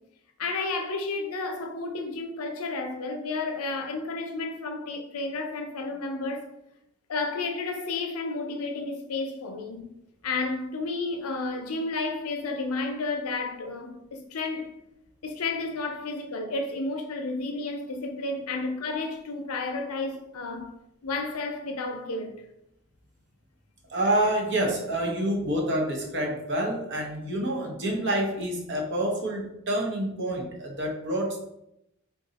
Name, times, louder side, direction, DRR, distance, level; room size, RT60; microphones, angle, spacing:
voice 1, 0.4-6.5 7.1-9.9 10.2-14.7 15.2-20.7 21.0-22.4, left 3 dB, 75° left, 0.6 m, -32 dB
voice 2, 23.9-31.4, right 1 dB, 55° right, 0.8 m, -27 dB
3.7 x 2.3 x 4.0 m
head